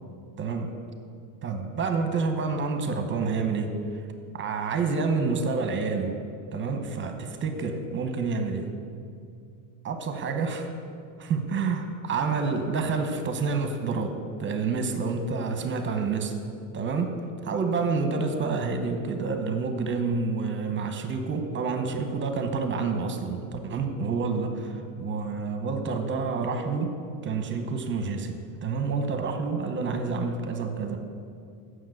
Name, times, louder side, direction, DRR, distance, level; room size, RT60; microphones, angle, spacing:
voice 1, 0.4-0.8 1.4-3.8 4.3-6.2 6.5-8.7 9.8-10.7 11.2-16.4 16.7-17.2 17.5-31.0, right 4 dB, 25° right, 6 dB, 0.8 m, -28 dB
7.3 x 6.2 x 7.8 m, 2.4 s
cardioid pair, 140°, 43 cm